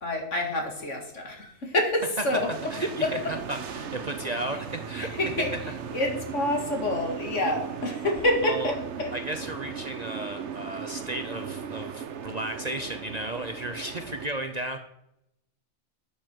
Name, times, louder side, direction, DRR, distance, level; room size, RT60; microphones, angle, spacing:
voice 1, 0.0-2.7 3.0-3.1 5.0-5.5 5.9-9.1 10.9-11.0, left 1 dB, 65° left, 2 dB, 2.6 m, -27 dB
sound 1, 2.3-14.3, right 7 dB, 60° right, 1.1 m, -37 dB
voice 2, 2.7-5.2 8.4-8.7 9.1-14.8, right 1 dB, 35° right, 6 dB, 0.8 m, -34 dB
12.5 x 8.5 x 4.6 m, 0.81 s
omnidirectional pair, 1.4 m